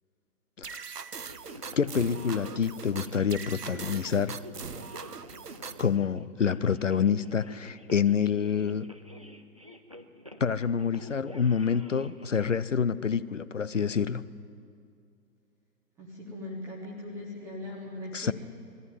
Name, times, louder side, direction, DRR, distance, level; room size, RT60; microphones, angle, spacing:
sound 1, 0.6-6.0, right 6 dB, 75° right, 0.9 m, -41 dB
sound 2, 1.3-12.6, left 1 dB, 25° right, 0.5 m, -48 dB
voice 1, 1.8-4.4 5.8-8.9 10.4-14.3 18.1-18.3, left 7 dB, 50° left, 17 dB, 0.6 m, -27 dB
voice 2, 16.0-18.3, left 2 dB, 5° right, -3 dB, 1.0 m, -40 dB
20.5 x 14.5 x 9.4 m, 2.3 s
figure-of-eight pair, 135°, 48 cm